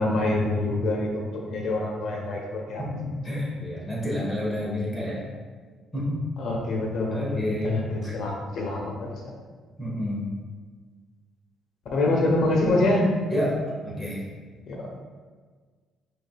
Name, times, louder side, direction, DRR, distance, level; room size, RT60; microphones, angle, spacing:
voice 1, 0.0-2.8 6.4-9.1 11.9-13.0 14.7-14.9, left 2 dB, 65° left, -1 dB, 1.0 m, -25 dB
voice 2, 2.8-5.2 5.9-6.2 7.1-8.1 9.8-10.4 13.3-14.3, left 1 dB, 10° left, -5 dB, 1.5 m, -29 dB
5.0 x 3.8 x 2.4 m, 1.5 s
supercardioid pair, 75°, 0 cm